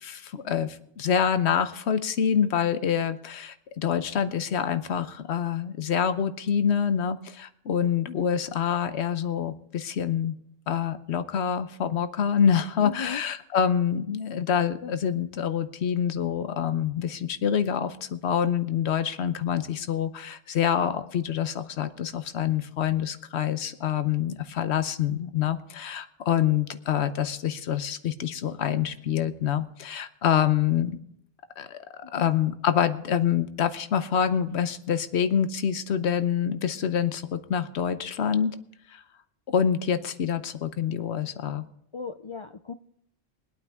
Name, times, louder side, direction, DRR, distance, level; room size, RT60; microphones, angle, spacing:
voice 1, 0.0-10.3 10.7-31.0 31.6-31.8 32.1-38.6 38.9-39.0 39.5-41.7, left 8 dB, 75° left, 11 dB, 1.1 m, -26 dB
voice 2, 12.8-13.2 32.0-32.3 41.9-42.7, left 5 dB, 50° left, 8 dB, 0.3 m, -37 dB
23.0 x 8.8 x 3.6 m, 0.72 s
omnidirectional pair, 1.1 m